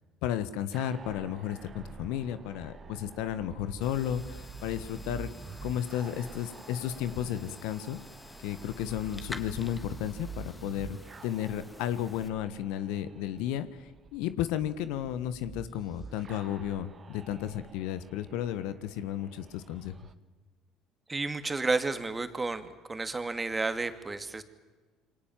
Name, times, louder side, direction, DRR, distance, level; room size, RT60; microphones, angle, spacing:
voice 1, 0.2-5.3 5.6-8.0 8.4-11.0 11.2-19.9, left 11 dB, 65° left, 13 dB, 1.4 m, -33 dB
sound 1, 0.7-20.1, right 5 dB, 35° right, 1.7 m, -48 dB
sound 2, 3.8-12.3, left 2 dB, 20° left, 2.8 m, -49 dB
voice 2, 21.1-24.4, right 3 dB, 20° right, 9 dB, 2.6 m, -31 dB
28.0 x 25.0 x 7.5 m, 1.3 s
hypercardioid pair, 60°, 0 cm